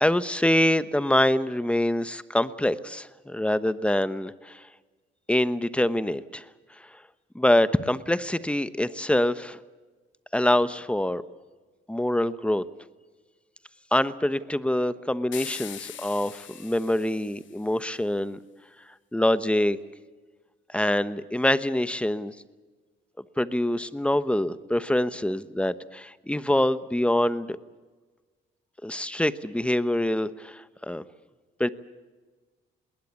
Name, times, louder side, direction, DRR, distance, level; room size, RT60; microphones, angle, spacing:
voice 1, 0.0-4.6 5.3-6.4 7.3-9.6 10.3-11.2 11.9-12.6 13.9-18.4 19.1-19.8 20.7-22.3 23.4-27.6 28.8-31.0 31.6-31.7, left 1 dB, 5° left, 14 dB, 1.1 m, -25 dB
sound 1, 15.3-17.7, left 12 dB, 70° left, 1.1 m, -42 dB
20.5 x 19.0 x 8.5 m, 1.3 s
cardioid pair, 90°, 20 cm